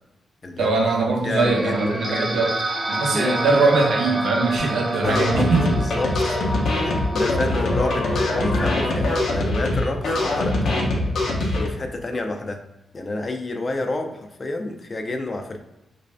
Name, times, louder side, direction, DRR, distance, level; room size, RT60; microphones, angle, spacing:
voice 1, 0.6-2.6 2.9-5.7, right 3 dB, 85° right, 1 dB, 0.7 m, -21 dB
voice 2, 1.2-2.4 3.1-3.4 5.0-6.2 6.8-11.0 11.5-12.6 12.9-15.6, left 2 dB, 35° left, 4 dB, 0.4 m, -29 dB
sound 1, 1.5-9.1, right 1 dB, 20° right, 0.6 m, -29 dB
sound 2, 5.0-11.7, left 2 dB, 75° left, 0.7 m, -23 dB
3.1 x 2.6 x 3.3 m, 0.91 s
cardioid pair, 115°, 0 cm